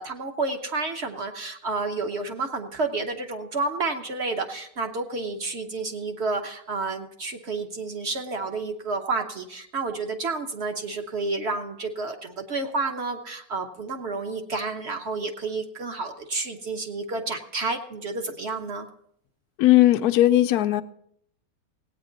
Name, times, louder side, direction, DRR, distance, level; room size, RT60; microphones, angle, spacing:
voice 1, 0.0-18.9, right 3 dB, 45° right, 5 dB, 1.0 m, -30 dB
voice 2, 19.6-20.8, left 14 dB, 70° left, 10 dB, 1.0 m, -18 dB
17.5 x 9.0 x 3.9 m, 0.71 s
omnidirectional pair, 1.9 m